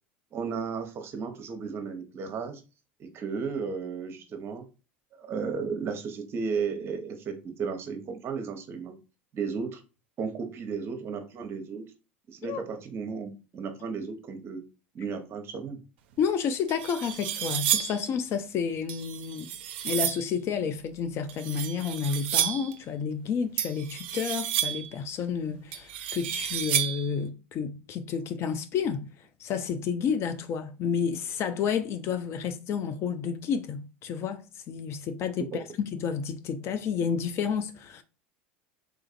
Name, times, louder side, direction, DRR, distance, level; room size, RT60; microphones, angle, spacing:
voice 1, 0.3-2.6 3.0-4.6 5.2-8.9 9.3-9.8 10.2-11.9 12.3-14.6 14.9-15.8 35.5-35.6, right 5 dB, 40° right, 0.8 m, -34 dB
voice 2, 16.2-19.5 19.8-29.1 29.4-38.0, left 6 dB, 45° left, 0.4 m, -30 dB
sound 1, 16.2-16.3 16.7-18.1 18.9-20.3 21.3-22.8 23.6-24.9 25.7-27.1, right 11 dB, 70° right, 0.4 m, -31 dB
3.5 x 2.5 x 2.5 m
hypercardioid pair, 80°, 6 cm